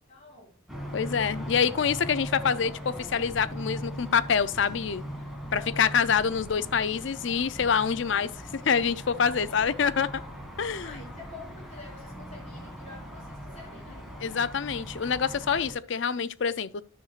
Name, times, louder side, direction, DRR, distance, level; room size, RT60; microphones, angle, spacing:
voice 1, 0.1-0.6 5.5-6.0 10.8-14.1, left 3 dB, 35° left, 4.4 m, -48 dB
sound 1, 0.7-15.7, equal, ahead, 1.9 m, -40 dB
voice 2, 0.9-5.0 5.5-10.2 10.6-10.9 14.2-16.8, left 6 dB, 65° left, 0.5 m, -26 dB
10.0 x 7.1 x 2.4 m
head